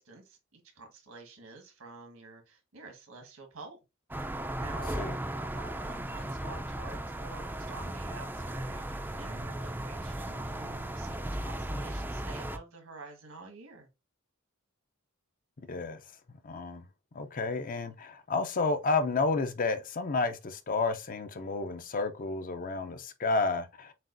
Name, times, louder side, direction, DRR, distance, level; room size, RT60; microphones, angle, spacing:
voice 1, 0.0-3.8 4.1-5.0 5.2-13.9, right 3 dB, 85° right, 1.6 m, -49 dB
sound 1, 4.1-12.6, right 1 dB, 10° right, 0.4 m, -36 dB
voice 2, 15.7-16.0 16.4-16.8 17.1-23.9, left 3 dB, 40° left, 0.6 m, -31 dB
7.4 x 2.5 x 2.6 m
head